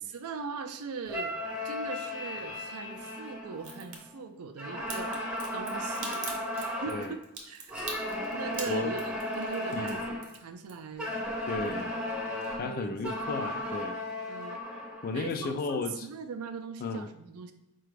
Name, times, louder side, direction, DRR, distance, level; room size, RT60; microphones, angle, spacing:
voice 1, 0.1-1.3 1.6-7.7 8.3-11.1 11.7-12.2 12.6-13.0 14.3-14.6 15.1-17.5, right 5 dB, 85° right, 8 dB, 0.4 m, -41 dB
sound 1, 1.1-4.1 4.6-7.2 7.7-10.3 11.0-15.2, left 1 dB, 5° right, 0.6 m, -35 dB
Crack, 3.6-4.0 4.9-11.1 11.4-12.1 12.4-12.5, right 4 dB, 60° right, 0.8 m, -42 dB
voice 2, 6.9-7.2 8.7-9.0 9.7-10.0 11.5-11.9 12.5-14.0 14.3-14.4 15.0-16.1 16.8-17.1, left 3 dB, 40° left, 8 dB, 0.3 m, -34 dB
4.8 x 2.3 x 3.2 m, 0.94 s
head